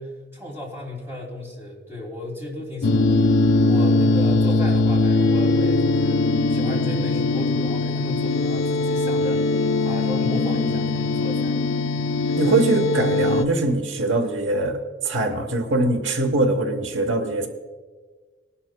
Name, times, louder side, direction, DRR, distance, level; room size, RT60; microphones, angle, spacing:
voice 1, 0.0-3.3 3.6-9.5 9.8-11.6 11.9-12.1, left 1 dB, 15° right, -2 dB, 2.6 m, -34 dB
sound 1, 2.8-13.5, left 2 dB, 85° left, 0.5 m, -21 dB
voice 2, 12.4-17.5, right 2 dB, 90° right, 6 dB, 1.0 m, -22 dB
19.5 x 11.5 x 2.2 m, 1.4 s
head